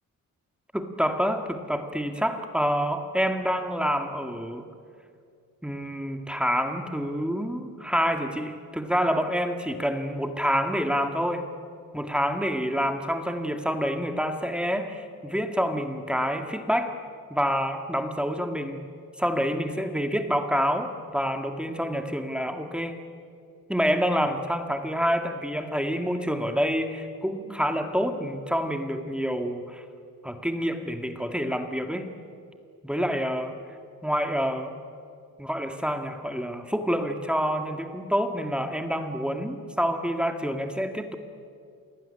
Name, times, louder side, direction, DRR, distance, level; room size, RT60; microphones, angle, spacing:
voice 1, 0.7-4.7 5.6-11.5 11.9-17.0 17.3-18.9 19.2-23.0 23.7-29.8 30.2-32.1 32.8-33.6 34.0-34.7 35.4-41.2, equal, 5° right, 6 dB, 1.8 m, -27 dB
28.0 x 19.5 x 9.9 m, 2.3 s
cardioid pair, 120°, 32 cm